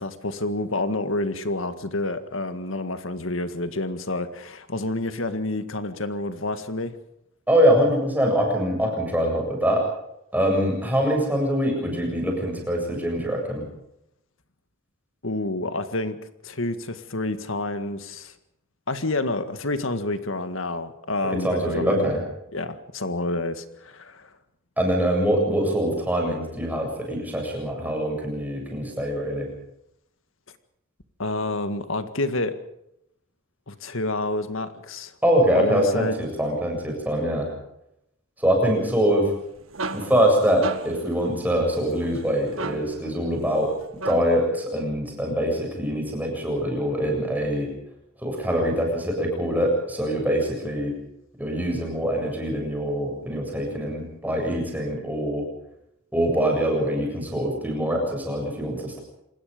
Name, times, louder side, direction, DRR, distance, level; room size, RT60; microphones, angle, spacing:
voice 1, 0.0-6.9 15.2-18.3 18.9-22.2 22.5-24.3 31.2-32.5 33.7-35.1 35.5-36.2, left 2 dB, 75° left, 10 dB, 1.9 m, -29 dB
voice 2, 7.5-9.8 10.3-13.6 21.2-22.2 24.8-29.5 35.2-37.5 38.4-39.3 39.9-43.7 44.0-47.7 48.2-50.9 51.4-55.5 56.1-59.0, equal, 10° right, 1 dB, 7.5 m, -24 dB
sound 1, 39.3-44.5, right 3 dB, 80° right, 1.8 m, -36 dB
27.0 x 20.5 x 5.3 m, 0.79 s
head